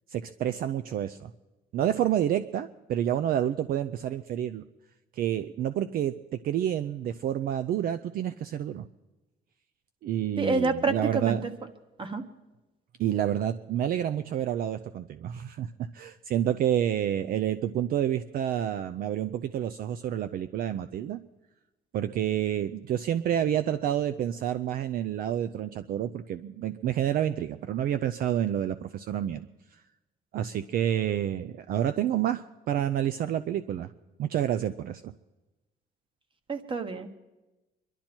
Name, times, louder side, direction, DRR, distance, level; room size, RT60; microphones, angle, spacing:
voice 1, 0.1-1.3 1.7-4.6 5.2-8.9 10.0-11.4 13.0-21.2 21.9-29.5 30.3-33.9 34.2-35.1, right 10 dB, 60° right, 11 dB, 0.5 m, -29 dB
voice 2, 10.4-11.5 12.0-12.2 36.5-37.1, right 3 dB, 30° right, 9 dB, 1.4 m, -28 dB
24.0 x 12.0 x 4.5 m, 1.1 s
cardioid pair, 110°, 17 cm